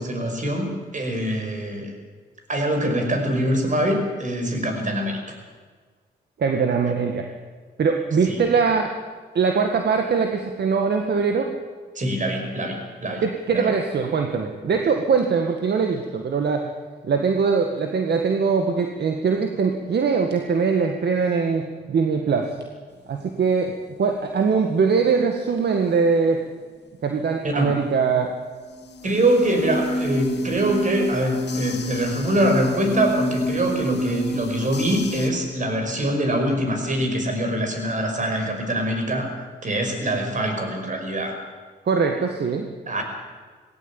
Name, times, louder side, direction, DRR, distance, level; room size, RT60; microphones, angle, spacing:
voice 1, 0.0-1.9 2.5-5.2 8.3-8.5 12.0-13.2 13.5-13.7 27.4-27.8 29.0-39.3 39.6-41.4 42.9-43.0, right 1 dB, 45° right, 4 dB, 5.7 m, -24 dB
voice 2, 6.4-7.3 7.8-8.9 9.3-11.5 13.2-16.7 17.0-22.6 23.1-26.4 27.0-28.3 41.9-42.7, right 5 dB, 65° right, 4 dB, 1.9 m, -22 dB
sound 1, 28.6-35.3, equal, 65° left, 2.3 m, -28 dB
19.0 x 17.0 x 9.0 m, 1.5 s
cardioid pair, 80°, 19 cm